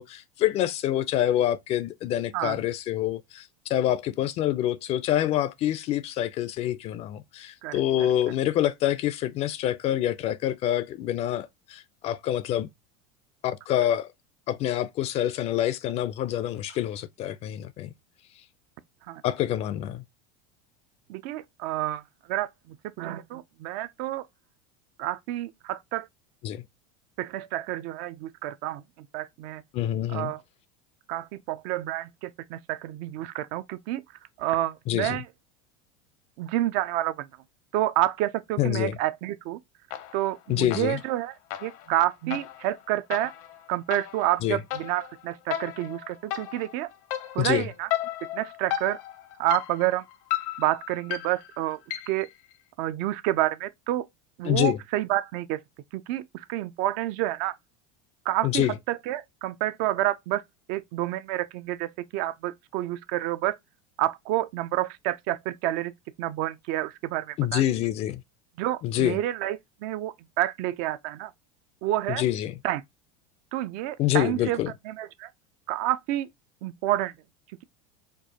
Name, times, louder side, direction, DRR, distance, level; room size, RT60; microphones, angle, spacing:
voice 1, 0.0-12.7 13.4-14.1 14.5-17.9 19.2-20.0 26.4-26.6 29.7-30.3 34.9-35.2 38.6-39.0 40.5-41.0 44.4-44.6 47.4-47.7 54.4-54.8 58.4-58.8 67.4-68.2 68.8-69.2 72.1-72.5 74.0-74.7, left 12 dB, 35° left, 0.4 m, -26 dB
voice 2, 21.1-22.0 22.3-24.2 25.0-26.1 27.2-29.6 30.1-30.4 31.1-34.0 34.4-35.2 36.4-37.3 37.7-39.6 40.1-41.3 41.6-43.3 43.7-46.9 47.3-47.9 48.3-49.0 49.4-50.0 50.6-51.8 52.1-52.3 52.8-54.0 54.4-55.6 55.9-57.6 58.3-60.4 60.7-63.6 64.0-65.9 66.2-67.6 68.6-71.3 71.8-72.2 72.6-72.8 73.5-74.6 74.9-75.3 75.7-76.3 76.6-77.1, right 15 dB, 55° right, 0.4 m, -29 dB
sound 1, 39.9-40.4 40.7-52.3, left 13 dB, 70° left, 0.7 m, -35 dB
4.5 x 2.4 x 2.7 m
supercardioid pair, 140°, 18 cm